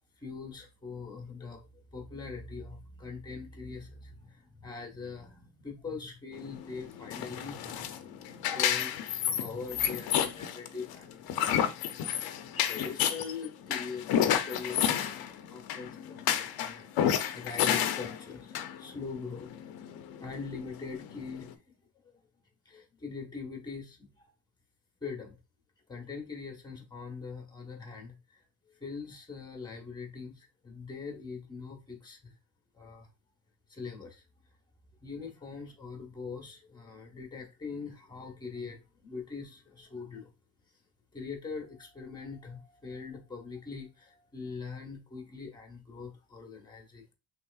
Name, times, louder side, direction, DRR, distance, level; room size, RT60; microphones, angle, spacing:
voice 1, 0.2-19.5 20.2-21.7 22.0-22.2 22.6-24.3 25.0-25.3 25.9-32.3 32.7-33.1 33.7-34.2 35.0-40.3 41.1-47.1, left 4 dB, 10° left, 1.1 m, -43 dB
sound 1, 6.3-21.5, left 9 dB, 55° left, 0.6 m, -31 dB
5.6 x 3.2 x 2.4 m
cardioid pair, 160°, 44 cm